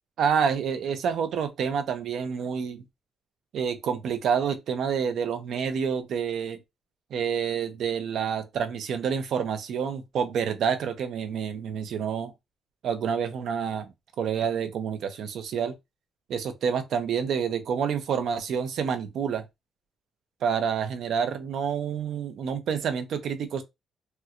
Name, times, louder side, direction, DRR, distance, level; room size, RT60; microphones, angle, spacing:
voice 1, 0.2-2.8 3.5-6.6 7.1-12.3 12.8-15.7 16.3-19.5 20.4-23.6, right 7 dB, 60° right, 0.6 m, -28 dB
4.2 x 2.2 x 2.5 m
cardioid pair, 170°, 0 cm